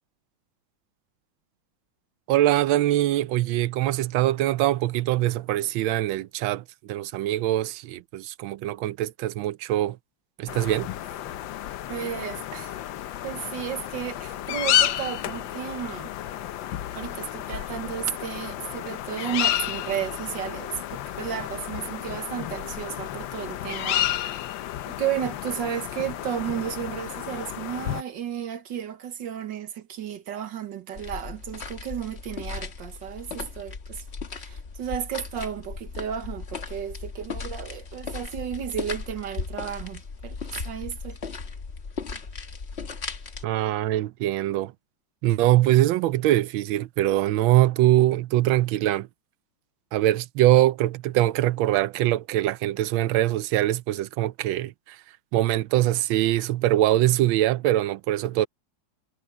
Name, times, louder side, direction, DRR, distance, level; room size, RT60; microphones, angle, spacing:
voice 1, 2.3-10.0 10.4-10.9 43.4-44.7 45.2-49.1 49.9-55.0 55.3-58.5, right 14 dB, 85° right, 1.4 m, -23 dB
sound 1, 10.5-28.0, left 12 dB, 75° left, 1.4 m, -31 dB
voice 2, 11.9-12.8 13.2-16.1 17.0-24.4 24.9-34.0 34.3-41.2, right 9 dB, 70° right, 1.9 m, -33 dB
sound 2, 31.0-43.4, left 4 dB, 40° left, 1.4 m, -37 dB
omnidirectional pair, 2.1 m